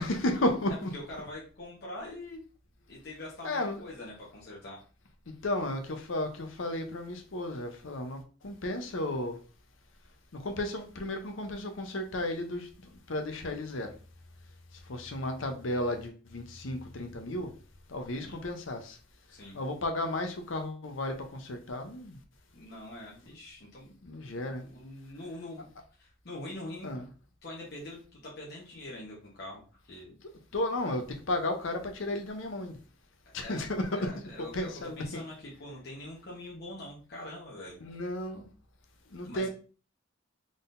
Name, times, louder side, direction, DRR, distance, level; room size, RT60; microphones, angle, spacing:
voice 1, 0.0-0.9 3.4-3.8 5.3-8.2 8.4-9.4 10.4-13.9 14.9-17.5 17.9-19.0 19.5-22.2 24.0-24.6 26.8-27.0 30.5-32.8 33.3-34.1 34.5-35.2 37.8-38.4 39.1-39.5, left 1 dB, 70° left, 0.7 m, -33 dB
voice 2, 0.7-2.4 2.9-4.8 18.2-18.4 19.3-19.5 22.5-23.9 24.4-25.7 26.0-26.9 27.4-30.2 33.4-33.7 33.9-34.7 35.0-37.8 39.2-39.5, left 1 dB, 50° left, 1.1 m, -44 dB
3.9 x 3.7 x 2.6 m
head